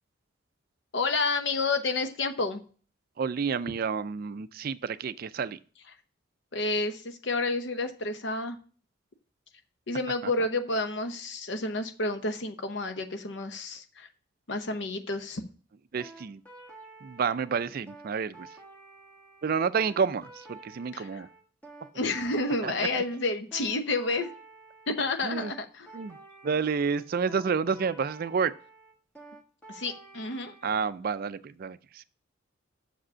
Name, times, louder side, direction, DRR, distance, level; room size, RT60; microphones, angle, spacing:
voice 1, 0.9-2.6 6.5-8.6 9.9-14.1 14.5-15.4 20.9-21.2 21.9-24.3 24.9-25.9 29.7-30.5, left 2 dB, 60° left, 7 dB, 0.9 m, -30 dB
voice 2, 3.2-5.6 15.9-16.4 17.0-18.5 19.4-21.3 22.6-22.7 25.2-25.5 25.9-26.2 26.4-28.5 30.6-32.0, right 6 dB, 50° right, 14 dB, 0.4 m, -29 dB
sound 1, 16.0-30.8, right 3 dB, 5° left, 1.5 m, -50 dB
6.9 x 5.1 x 6.2 m, 0.41 s
head